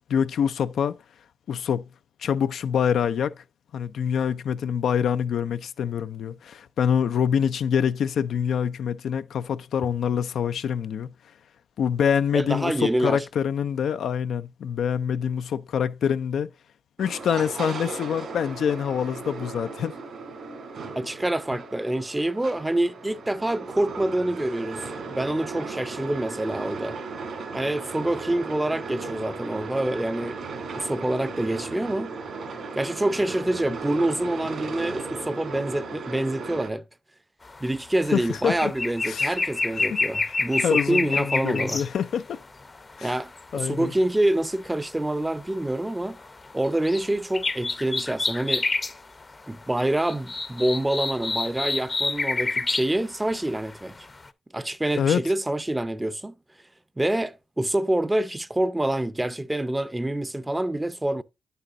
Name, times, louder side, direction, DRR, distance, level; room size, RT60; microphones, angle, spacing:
voice 1, 0.1-1.0 1.5-1.9 2.2-3.4 3.7-11.1 11.8-16.5 17.0-19.9 38.1-38.7 39.1-39.3 39.7-40.0 40.6-42.4 43.0-43.2 43.5-43.9 55.0-55.2, left 8 dB, 75° left, 0.3 m, -25 dB
voice 2, 12.3-13.2 21.0-27.0 27.5-30.4 30.8-32.1 32.7-36.8 37.6-41.8 43.0-46.2 46.5-48.7 49.5-53.9 54.5-56.3 57.0-61.2, right 1 dB, 15° right, 0.6 m, -26 dB
sound 1, 17.0-36.7, right 4 dB, 70° right, 2.5 m, -36 dB
sound 2, 37.5-37.7 38.0-41.9 42.7-43.4 45.4-45.6 46.0-47.1 47.3-49.0 49.3-49.4 49.7-52.9 53.4-54.0 54.3-54.4, left 3 dB, 35° left, 0.6 m, -28 dB
9.1 x 6.7 x 2.4 m
supercardioid pair, 50°, 0 cm